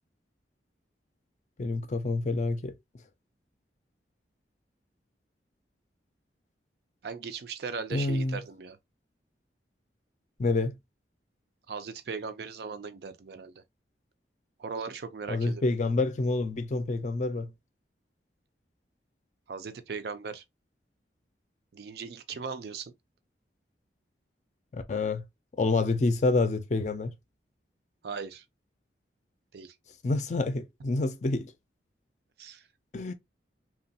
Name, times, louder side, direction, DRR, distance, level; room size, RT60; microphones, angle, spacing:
voice 1, 1.6-2.7 7.9-8.4 10.4-10.8 15.3-17.5 24.7-25.2 25.6-27.1 30.0-31.5 32.9-33.1, left 3 dB, 40° left, 0.4 m, -27 dB
voice 2, 7.0-8.8 11.7-13.6 14.6-15.7 19.5-20.4 21.7-22.9 28.0-28.4 29.5-29.8 32.4-32.7, right 5 dB, 60° right, 0.4 m, -38 dB
3.0 x 2.2 x 2.6 m
head